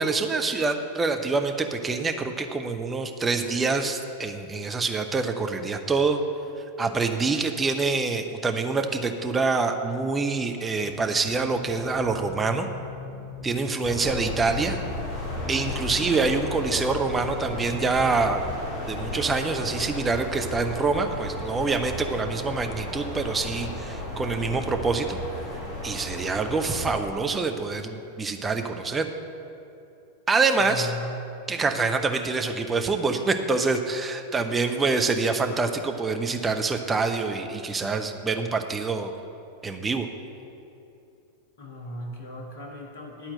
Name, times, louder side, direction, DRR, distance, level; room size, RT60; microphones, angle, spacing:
voice 1, 0.0-6.2 6.8-12.7 13.4-14.8 15.5-18.4 18.9-25.2 25.8-29.1 30.3-30.9 31.5-39.1 39.6-40.1, right 4 dB, 15° right, 5 dB, 0.7 m, -26 dB
sound 1, 10.9-19.6, left 4 dB, 45° right, 1.1 m, -42 dB
sound 2, 13.8-27.0, left 1 dB, 35° left, 2.0 m, -34 dB
voice 2, 30.6-31.2 41.6-43.3, left 1 dB, 55° left, -1 dB, 1.7 m, -37 dB
11.0 x 4.4 x 7.6 m, 2.7 s
figure-of-eight pair, 90°, 0 cm